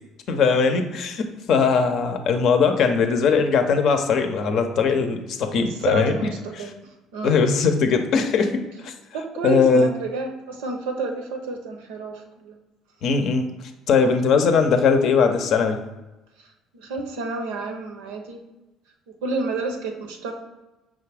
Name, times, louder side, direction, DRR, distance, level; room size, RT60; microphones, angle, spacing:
voice 1, 0.3-6.2 6.6-6.7 7.2-8.9 9.4-9.9 13.0-13.5 13.9-15.8, left 5 dB, 60° left, 7 dB, 0.6 m, -20 dB
voice 2, 5.7-6.8 7.1-7.5 9.1-12.6 16.8-18.4 19.2-20.3, right 3 dB, 80° right, 4 dB, 0.7 m, -30 dB
5.4 x 2.4 x 3.3 m, 1.0 s
hypercardioid pair, 60°, 0 cm